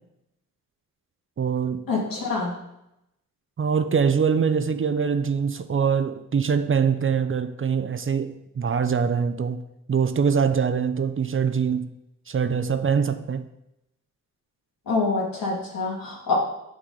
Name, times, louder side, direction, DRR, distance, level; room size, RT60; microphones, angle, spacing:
voice 1, 1.4-1.9 3.6-9.6 9.9-11.9 12.3-13.5, right 6 dB, 40° right, 0.6 m, -23 dB
voice 2, 1.9-2.5 14.9-16.3, left 3 dB, 85° left, 2.1 m, -26 dB
6.2 x 6.2 x 3.8 m
cardioid pair, 50°, 34 cm